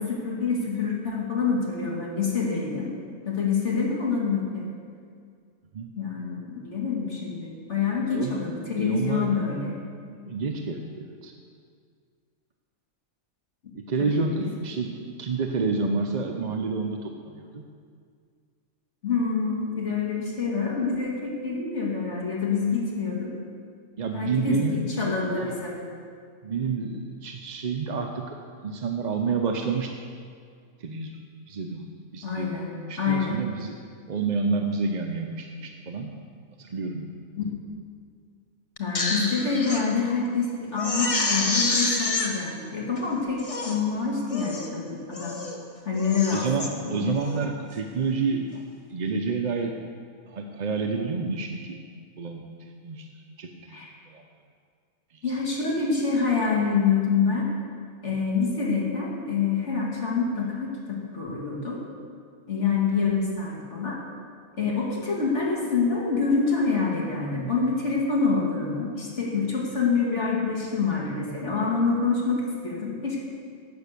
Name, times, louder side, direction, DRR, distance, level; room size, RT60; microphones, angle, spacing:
voice 1, 0.0-2.9 3.2-4.6 5.9-9.8 13.6-13.7 14.0-14.5 19.0-23.3 24.1-25.7 32.2-32.6 33.0-33.4 37.4-37.5 38.8-45.4 45.8-47.1 53.7-53.9 55.2-57.4 58.0-61.8 62.5-64.0 64.5-73.2, left 5 dB, 55° left, -3 dB, 2.8 m, -26 dB
voice 2, 8.8-9.4 10.3-11.3 13.7-17.6 24.0-25.5 26.4-29.9 30.8-31.2 31.5-31.9 32.1-33.8 34.1-36.1 36.6-37.1 46.3-48.6 48.9-49.8 50.3-51.8 52.2-52.5 52.8-53.1 53.4-53.8 54.1-54.2 55.1-55.4, right 4 dB, 45° right, 3 dB, 0.7 m, -29 dB
Crying sobbing, 38.8-39.8 40.3-40.4 40.8-42.3 43.0-43.1 43.4-43.8 44.3-44.7 45.1-45.6 45.9-46.7 47.2-47.5, left 2 dB, 25° left, 1.1 m, -28 dB
12.0 x 8.3 x 6.7 m, 2.1 s
omnidirectional pair, 1.4 m